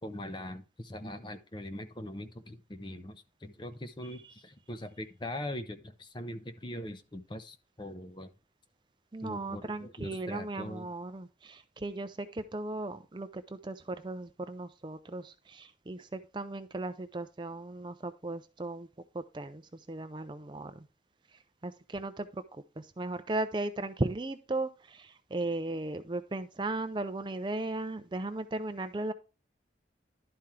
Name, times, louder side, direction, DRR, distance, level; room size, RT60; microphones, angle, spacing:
voice 1, 0.0-8.3 9.2-10.9, left 1 dB, 25° left, 8 dB, 0.7 m, -41 dB
voice 2, 9.1-18.9 19.1-20.9 21.3-22.4 22.8-29.1, right 2 dB, 25° right, 10 dB, 0.4 m, -36 dB
11.5 x 4.4 x 3.6 m, 0.31 s
head